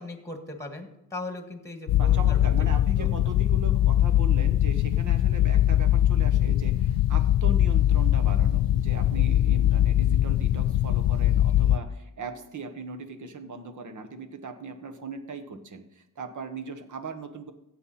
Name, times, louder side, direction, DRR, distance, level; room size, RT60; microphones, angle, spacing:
voice 1, 0.0-2.5 3.0-3.1, left 2 dB, 10° left, 5 dB, 1.7 m, -38 dB
sound 1, 1.9-11.8, left 12 dB, 85° left, 0.5 m, -22 dB
voice 2, 2.0-17.5, right 4 dB, 60° right, 7 dB, 1.3 m, -39 dB
15.0 x 8.0 x 4.2 m, 0.87 s
wide cardioid pair, 115°, 34 cm